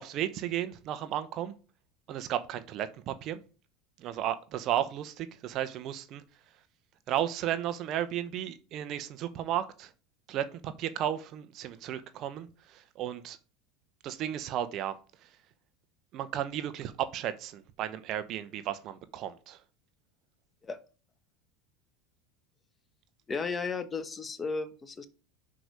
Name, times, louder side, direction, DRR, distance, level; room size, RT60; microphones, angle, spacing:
voice 1, 0.0-1.5 2.1-3.4 4.0-6.2 7.1-9.9 10.3-13.4 14.0-14.9 16.1-19.6, right 11 dB, 50° right, 12 dB, 0.9 m, -34 dB
voice 2, 23.3-25.1, left 4 dB, 25° left, 11 dB, 1.0 m, -34 dB
6.0 x 4.8 x 5.1 m, 0.36 s
hypercardioid pair, 100°, 0 cm